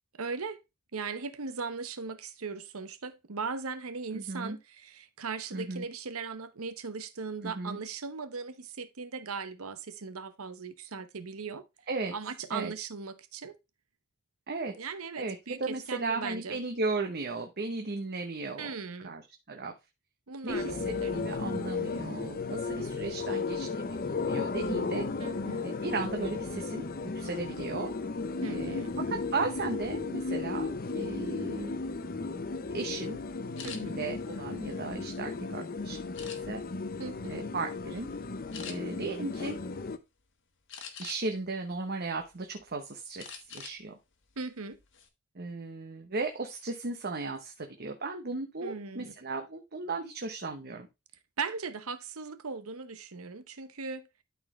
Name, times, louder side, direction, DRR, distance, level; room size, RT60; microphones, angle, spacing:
voice 1, 0.2-0.6 0.9-11.6 12.1-13.6 14.8-16.6 18.6-19.1 20.3-21.2 25.2-25.7 28.4-28.9 33.6-34.0 37.0-37.4 44.4-44.8 48.6-49.1 51.4-54.1, right 4 dB, 85° right, 0.9 m, -38 dB
voice 2, 4.1-4.6 5.5-5.8 7.4-7.8 11.9-12.1 12.5-12.7 14.5-14.8 15.2-18.7 19.0-19.2 19.5-19.7 20.4-25.1 25.6-26.9 27.1-27.9 28.5-31.8 32.7-33.2 33.8-36.6 37.3-38.1 38.7-39.6 41.0-44.0 45.3-50.9, right 3 dB, 45° right, 1.0 m, -36 dB
sound 1, 20.5-40.0, left 4 dB, 45° left, 0.7 m, -35 dB
sound 2, 33.6-33.8 34.4-35.4 36.1-36.7 37.3-37.5 37.8-38.0 38.5-38.8 40.7-41.4 41.9-42.6 43.2-43.8 44.1-44.3 44.7-45.1, left 7 dB, 60° left, 1.4 m, -44 dB
12.0 x 4.3 x 3.2 m
head